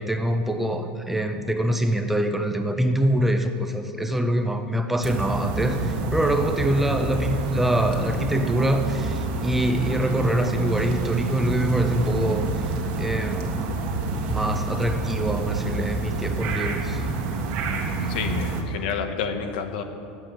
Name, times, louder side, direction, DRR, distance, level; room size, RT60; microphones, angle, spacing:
voice 1, 0.0-12.5 13.0-13.6 14.3-17.0, right 1 dB, 5° right, 6 dB, 0.6 m, -24 dB
sound 1, 5.0-18.6, right 3 dB, 60° right, 1.7 m, -28 dB
voice 2, 18.1-19.8, left 6 dB, 85° left, 6 dB, 1.1 m, -29 dB
9.8 x 7.7 x 9.0 m, 2.5 s
supercardioid pair, 155°, 5 cm